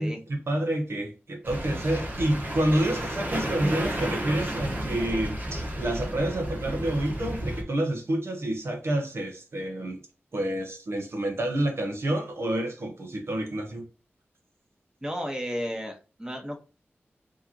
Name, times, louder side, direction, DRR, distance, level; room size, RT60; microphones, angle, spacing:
voice 1, 0.0-10.0 10.3-13.8, right 1 dB, 70° right, 1.0 m, -28 dB
sound 1, 1.4-7.6, right 1 dB, 45° right, 1.1 m, -32 dB
voice 2, 15.0-16.6, equal, 15° right, 1.1 m, -33 dB
4.7 x 2.9 x 2.9 m
wide cardioid pair, 60°, 4 cm